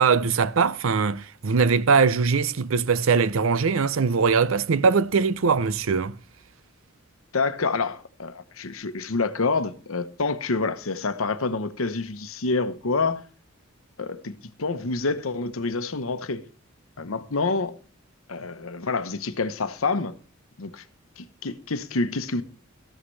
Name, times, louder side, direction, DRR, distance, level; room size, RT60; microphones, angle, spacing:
voice 1, 0.0-6.1, right 5 dB, 70° right, 0.6 m, -21 dB
voice 2, 7.3-13.2 14.0-16.4 17.0-17.7 18.3-20.1 20.6-20.8 21.2-22.4, left 3 dB, 80° left, 0.9 m, -27 dB
13.0 x 11.5 x 3.2 m
head